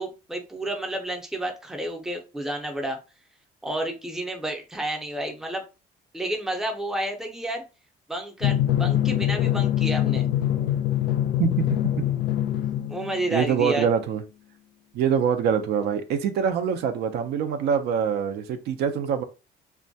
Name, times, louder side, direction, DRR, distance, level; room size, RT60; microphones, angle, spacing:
voice 1, 0.0-3.0 3.6-5.6 6.1-7.6 8.1-10.3 12.9-13.9, right 1 dB, 5° right, 0.5 m, -30 dB
Drum, 8.4-13.5, left 12 dB, 70° left, 0.4 m, -24 dB
voice 2, 11.4-12.0 13.3-14.2 14.9-19.2, right 7 dB, 75° right, 0.4 m, -24 dB
2.2 x 2.1 x 2.6 m
cardioid pair, 110°, 17 cm